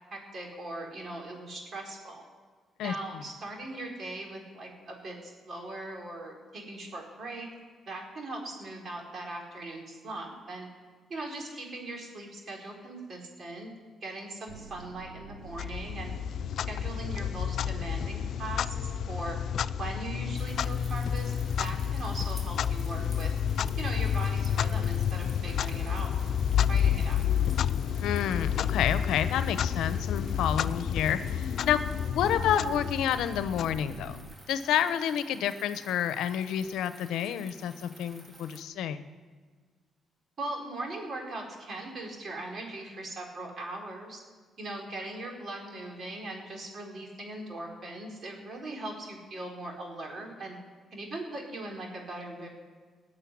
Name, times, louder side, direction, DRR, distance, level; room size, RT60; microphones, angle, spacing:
voice 1, 0.1-2.2 2.8-7.5 7.9-10.7 11.1-13.7 14.0-16.1 16.7-19.4 19.8-23.3 23.8-26.1 26.7-27.2 32.2-32.5 40.4-44.2 44.6-50.6 50.9-52.5, right 2 dB, 50° right, 0 dB, 4.3 m, -40 dB
sound 1, 14.5-34.4, right 3 dB, 70° right, 0.9 m, -47 dB
Clock, 15.5-34.3, left 9 dB, 65° left, 0.3 m, -30 dB
sound 2, 20.4-38.6, right 2 dB, 25° right, 2.0 m, -53 dB
voice 2, 28.0-34.2 34.5-39.0, left 9 dB, 85° left, 12 dB, 0.8 m, -29 dB
18.0 x 6.7 x 9.9 m, 1.6 s
cardioid pair, 90°, 0 cm